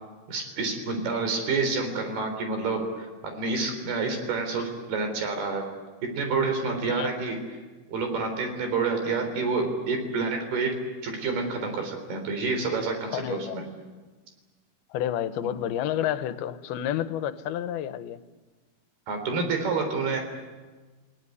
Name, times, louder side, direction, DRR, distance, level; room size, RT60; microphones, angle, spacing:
voice 1, 0.3-5.7 6.1-7.4 7.9-13.6 19.1-20.2, right 4 dB, 85° right, 5 dB, 5.7 m, -28 dB
voice 2, 6.9-7.2 13.1-13.6 14.9-18.2, left 11 dB, 80° left, 12 dB, 2.8 m, -30 dB
29.0 x 17.5 x 9.8 m, 1.3 s
omnidirectional pair, 4.4 m